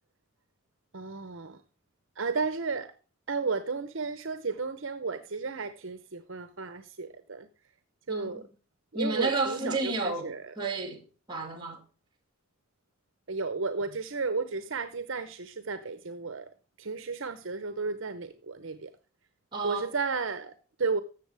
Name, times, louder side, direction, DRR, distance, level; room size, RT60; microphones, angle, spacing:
voice 1, 0.9-1.6 2.2-2.9 3.3-7.5 8.1-8.4 8.9-10.5 13.3-18.9 19.6-21.0, right 4 dB, 60° right, 0.8 m, -33 dB
voice 2, 8.1-8.4 8.9-11.0 11.3-11.8 19.5-19.9, right 3 dB, 20° right, 2.4 m, -31 dB
14.0 x 7.4 x 3.3 m
head